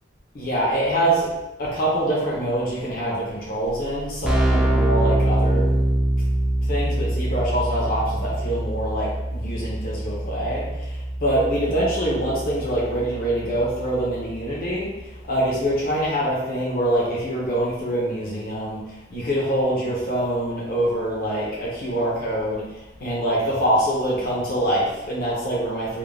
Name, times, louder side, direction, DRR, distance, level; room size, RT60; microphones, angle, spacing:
voice 1, 0.3-1.3 1.6-5.7 6.7-10.6 11.2-14.9 15.3-18.8 19.1-22.6 23.0-26.0, right 1 dB, 50° left, -5 dB, 0.6 m, -24 dB
Keyboard (musical), 3.7-3.8 3.9-14.6, right 1 dB, 5° right, 0.3 m, -24 dB
2.4 x 2.1 x 3.1 m, 0.99 s
head